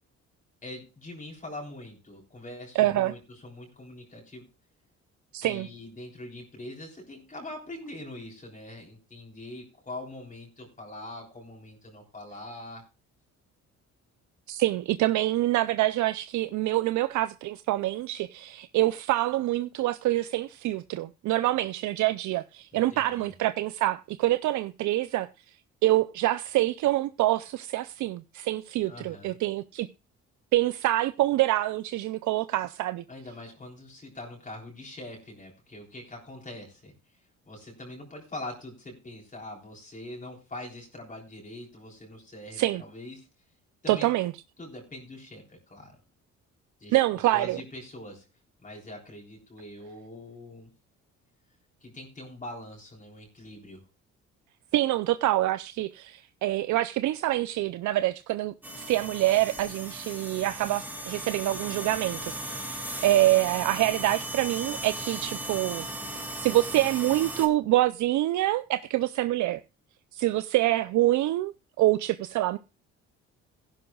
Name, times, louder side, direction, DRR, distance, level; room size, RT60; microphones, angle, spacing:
voice 1, 0.6-4.5 5.4-12.9 22.7-23.3 28.9-29.4 33.1-36.9 37.5-43.3 43.8-44.1 44.6-46.0 46.8-47.0 47.3-48.3 48.6-50.7 51.8-53.8, left 1 dB, 25° left, 3.7 m, -43 dB
voice 2, 2.8-3.1 5.3-5.7 14.5-25.3 25.8-29.9 30.5-33.0 42.6-42.8 43.9-44.3 46.9-47.6 54.7-65.9 66.4-69.6 70.1-71.5 71.8-72.6, right 15 dB, 75° right, 0.5 m, -26 dB
sound 1, 58.6-67.5, right 1 dB, 5° right, 2.3 m, -37 dB
15.5 x 11.5 x 2.3 m
cardioid pair, 105°, 30 cm